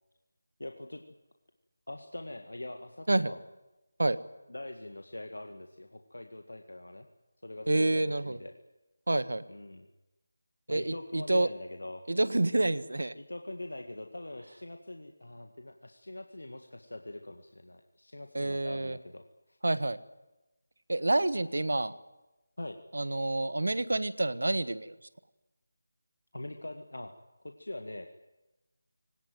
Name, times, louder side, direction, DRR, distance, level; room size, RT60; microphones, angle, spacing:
voice 1, 0.6-1.0 1.9-3.4 4.5-7.1 7.4-8.6 9.5-9.9 10.7-12.0 13.2-19.6 22.6-22.8 26.3-27.1 27.4-28.1, left 1 dB, 80° left, 5 dB, 1.9 m, -43 dB
voice 2, 7.7-8.4 9.1-9.4 10.7-11.5 12.1-13.1 18.3-19.0 19.6-20.0 20.9-21.9 22.9-24.9, right 2 dB, 75° right, 14 dB, 1.4 m, -28 dB
24.0 x 18.5 x 9.3 m, 1.0 s
figure-of-eight pair, 165°, 0 cm